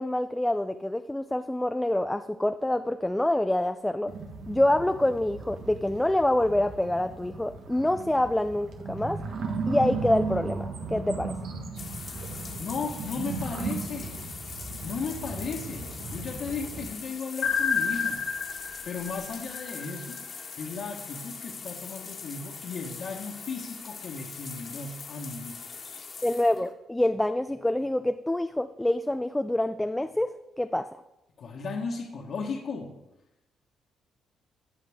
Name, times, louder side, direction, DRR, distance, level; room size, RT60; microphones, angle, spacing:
voice 1, 0.0-4.1 4.5-9.2 9.7-11.3 26.2-30.3 30.6-30.9, left 1 dB, 10° left, 9 dB, 0.4 m, -26 dB
sound 1, 4.1-16.9, right 4 dB, 65° right, 1.4 m, -36 dB
sound 2, 11.8-26.7, left 5 dB, 45° left, 1.4 m, -42 dB
voice 2, 12.6-14.1 14.8-18.2 18.8-20.3 20.6-25.6 31.4-33.0, left 4 dB, 60° left, -4 dB, 1.4 m, -35 dB
sound 3, 17.4-20.3, left 6 dB, 80° left, 1.2 m, -30 dB
17.0 x 5.7 x 3.6 m, 0.92 s
cardioid pair, 90°, 0 cm